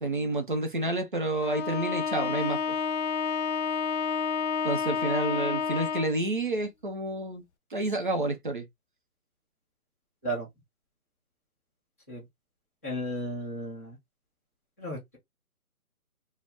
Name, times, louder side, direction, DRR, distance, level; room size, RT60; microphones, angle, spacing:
voice 1, 0.0-2.8 4.6-7.4 7.7-8.7, right 2 dB, 35° right, 0.5 m, -29 dB
Bowed string instrument, 1.4-6.2, left 6 dB, 55° left, 0.4 m, -30 dB
voice 2, 12.8-14.0 14.8-15.2, equal, 10° left, 0.6 m, -34 dB
2.6 x 2.1 x 3.3 m
hypercardioid pair, 155°, 44 cm